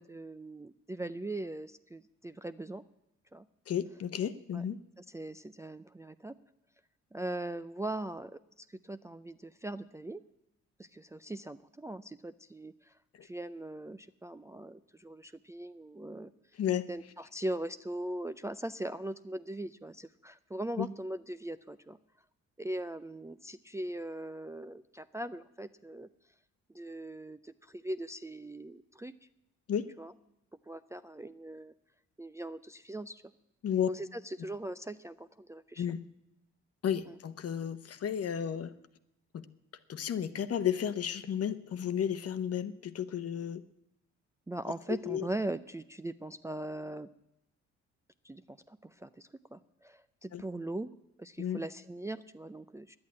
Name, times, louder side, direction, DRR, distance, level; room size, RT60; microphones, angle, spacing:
voice 1, 0.0-2.8 3.3-3.4 4.5-4.6 5.0-6.3 7.1-10.2 10.8-12.9 13.2-16.3 16.9-22.0 22.6-26.1 26.7-29.1 30.0-30.1 30.7-31.7 32.2-33.2 33.9-35.9 37.1-37.2 44.5-47.1 48.2-50.9 51.2-53.0, right 1 dB, 10° right, 10 dB, 0.4 m, -40 dB
voice 2, 3.7-4.8 13.1-13.3 16.6-16.8 20.8-20.9 29.7-29.9 33.6-33.9 35.8-36.0 36.8-38.7 39.3-39.4 39.9-43.6 45.0-45.3 50.3-50.4 51.4-51.6, left 9 dB, 55° left, 13 dB, 0.9 m, -33 dB
10.5 x 8.8 x 9.5 m, 0.84 s
cardioid pair, 90°, 30 cm